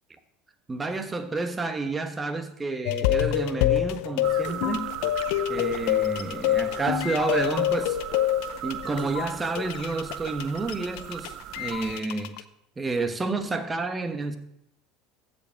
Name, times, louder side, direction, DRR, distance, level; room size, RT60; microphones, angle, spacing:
voice 1, 0.7-4.9 5.5-8.0 8.6-12.4 12.8-14.4, right 3 dB, 20° right, 8 dB, 1.3 m, -30 dB
sound 1, 2.9-12.4, left 13 dB, 65° left, 0.5 m, -27 dB
sound 2, 4.2-12.0, right 12 dB, 55° right, 0.5 m, -38 dB
15.0 x 5.4 x 4.7 m, 0.79 s
hypercardioid pair, 70°, 0 cm